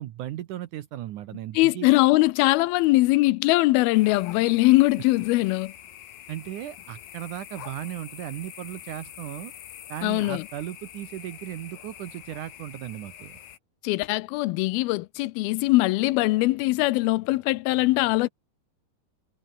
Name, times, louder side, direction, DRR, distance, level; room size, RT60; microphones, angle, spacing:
voice 1, 0.0-1.9 6.3-9.5 9.9-13.4, right 13 dB, 70° right, 2.1 m, -36 dB
voice 2, 1.5-5.7 10.0-10.5 13.8-18.3, left 20 dB, 85° left, 2.5 m, -21 dB
sound 1, 3.9-13.6, left 11 dB, 70° left, 3.4 m, -45 dB
omnidirectional pair, 4.4 m